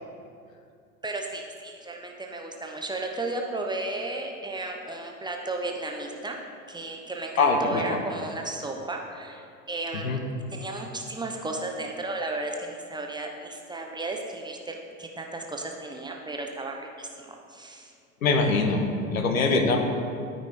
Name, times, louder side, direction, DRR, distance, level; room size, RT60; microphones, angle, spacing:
voice 1, 1.0-6.4 6.7-10.2 10.5-17.9, right 2 dB, 10° right, 1 dB, 0.7 m, -34 dB
voice 2, 7.4-8.0 10.0-10.2 18.2-19.8, left 3 dB, 75° left, 5 dB, 1.0 m, -23 dB
12.5 x 5.2 x 3.3 m, 2.4 s
figure-of-eight pair, 75°, 42 cm